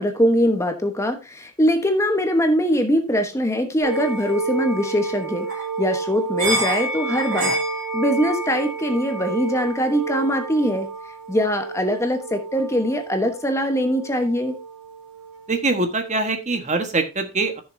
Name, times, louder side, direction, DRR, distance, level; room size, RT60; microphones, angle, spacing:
voice 1, 0.0-5.5 5.8-7.5 7.9-10.9 11.3-14.5, equal, 15° left, 6 dB, 1.1 m, -22 dB
sound 1, 3.8-15.5, right 3 dB, 60° right, 3.0 m, -29 dB
voice 2, 15.5-17.6, right 3 dB, 30° right, 7 dB, 1.4 m, -23 dB
14.5 x 6.6 x 2.7 m, 0.29 s
head